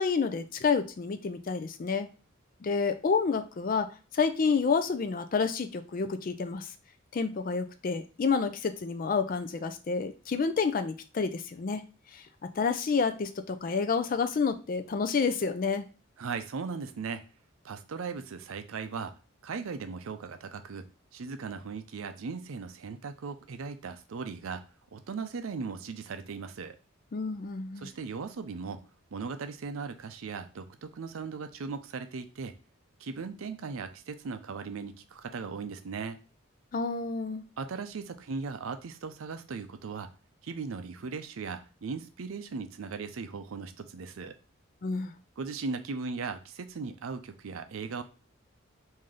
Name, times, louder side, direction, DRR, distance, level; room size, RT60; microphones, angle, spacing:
voice 1, 0.0-2.1 2.6-6.7 7.1-11.8 12.1-12.2 12.6-15.8 27.1-27.9 36.7-37.4 44.8-45.1, left 5 dB, 40° left, 9 dB, 0.4 m, -29 dB
voice 2, 16.2-17.2 17.6-19.1 19.4-20.9 21.1-24.6 24.9-26.8 27.8-28.8 29.1-32.5 33.0-36.2 37.6-40.1 40.4-44.3 45.4-48.0, right 5 dB, 75° right, 9 dB, 0.5 m, -38 dB
3.2 x 2.7 x 3.7 m, 0.34 s
head